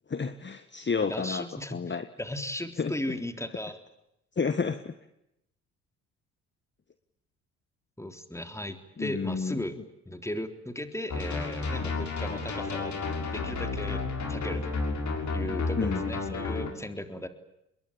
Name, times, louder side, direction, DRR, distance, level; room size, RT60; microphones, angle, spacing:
voice 1, 0.1-1.4 1.7-2.0 2.8-2.9 4.4-4.9 9.0-9.5 15.8-16.0, left 5 dB, 30° left, 10 dB, 1.7 m, -30 dB
voice 2, 1.0-3.8 8.0-9.8 10.1-13.0 13.3-14.0 14.3-14.8 15.3-17.3, left 1 dB, 5° left, 8 dB, 3.7 m, -36 dB
sound 1, 11.1-16.7, left 3 dB, 45° left, 6.9 m, -31 dB
27.0 x 22.0 x 8.9 m, 0.81 s
hypercardioid pair, 50°, 39 cm